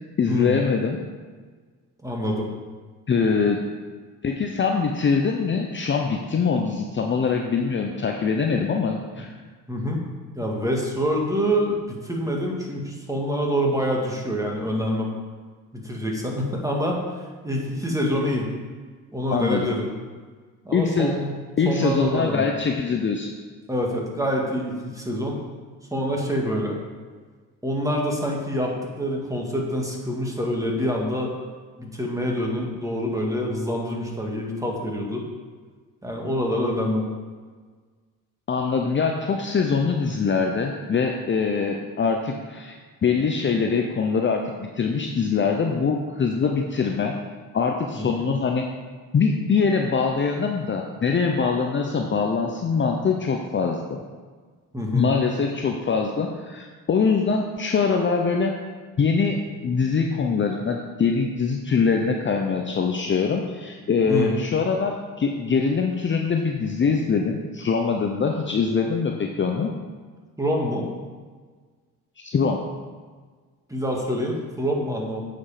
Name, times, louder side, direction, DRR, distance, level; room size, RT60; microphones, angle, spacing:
voice 1, 0.2-1.0 3.1-3.7 4.2-9.3 19.3-19.7 20.7-21.1 21.6-23.4 38.5-42.7 43.0-47.2 47.5-48.7 49.1-54.0 54.9-58.6 59.0-69.7 72.2-72.6, left 5 dB, 30° left, 2 dB, 0.7 m, -23 dB
voice 2, 2.0-2.5 9.7-10.0 10.3-15.1 15.7-17.0 17.4-18.5 19.1-19.9 20.6-21.3 21.7-22.4 23.7-25.4 25.9-26.8 27.6-31.3 31.8-35.2 36.0-37.0 47.9-48.3 54.7-55.1 64.1-64.3 70.4-70.9 73.7-75.2, equal, 10° right, -1 dB, 1.9 m, -26 dB
8.2 x 5.2 x 5.0 m, 1.5 s
supercardioid pair, 80°, 38 cm